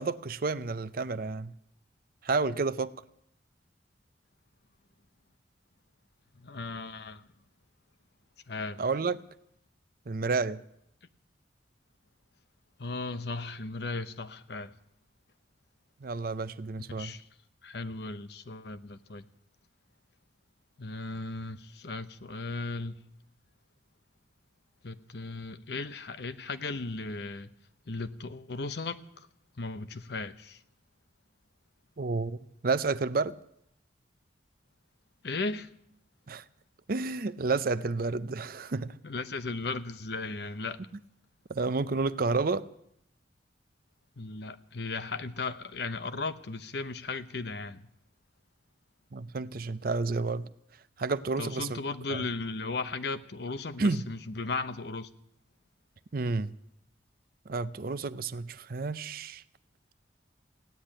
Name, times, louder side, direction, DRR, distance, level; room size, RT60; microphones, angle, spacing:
voice 1, 0.0-1.5 2.2-2.9 8.8-9.2 10.1-10.6 16.0-17.1 32.0-32.4 32.6-33.4 36.3-36.4 36.9-39.0 41.5-42.6 49.1-50.5 51.0-51.8 52.1-52.3 53.8-54.0 56.1-56.6 57.5-59.4, right 3 dB, 50° right, 0.6 m, -30 dB
voice 2, 6.4-7.3 8.5-8.8 12.8-14.7 17.0-17.3 17.6-19.3 20.8-23.0 24.8-27.5 27.9-29.3 29.6-30.6 35.2-35.7 39.0-40.8 44.2-47.9 51.4-55.1, left 3 dB, 60° left, 0.8 m, -36 dB
16.0 x 10.0 x 8.9 m
head